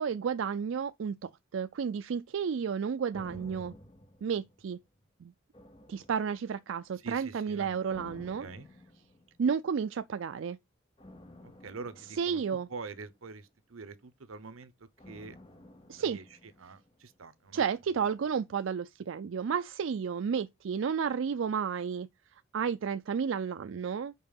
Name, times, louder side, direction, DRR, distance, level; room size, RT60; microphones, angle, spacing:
voice 1, 0.0-3.7 4.2-4.8 5.2-5.3 5.9-8.5 9.4-10.6 12.2-12.7 15.9-16.2 17.5-24.1, right 6 dB, 65° right, 0.4 m, -32 dB
sound 1, 3.1-5.0 5.5-6.8 7.9-9.6 11.0-13.4 15.0-17.2 17.4-17.5, left 1 dB, 25° left, 0.9 m, -53 dB
voice 2, 7.0-7.8 8.4-8.7 11.4-12.4 12.7-15.4 16.0-16.2 16.6-18.2, right 4 dB, 85° right, 0.9 m, -45 dB
5.5 x 4.8 x 5.3 m
head